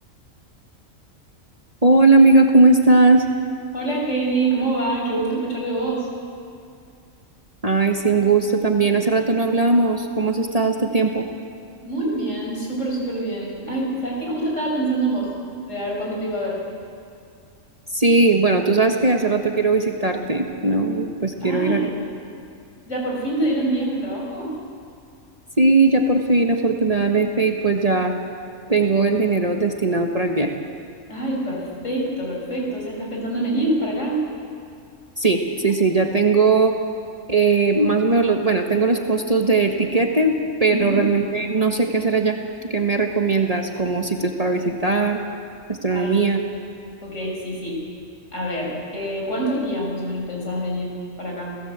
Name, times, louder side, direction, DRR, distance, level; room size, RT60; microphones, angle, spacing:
voice 1, 1.8-3.2 7.6-11.3 17.9-21.8 25.6-28.1 28.7-30.6 35.2-36.7 37.3-45.2 45.7-46.4, right 3 dB, 30° right, 3 dB, 1.4 m, -19 dB
voice 2, 3.7-6.1 11.8-15.3 15.7-16.6 21.4-21.9 22.9-24.5 31.1-34.2 40.7-41.1 45.9-46.3 47.0-47.8 48.3-50.9 51.2-51.6, right 2 dB, 65° left, -2 dB, 6.3 m, -25 dB
29.0 x 17.0 x 8.2 m, 2.4 s
omnidirectional pair, 1.4 m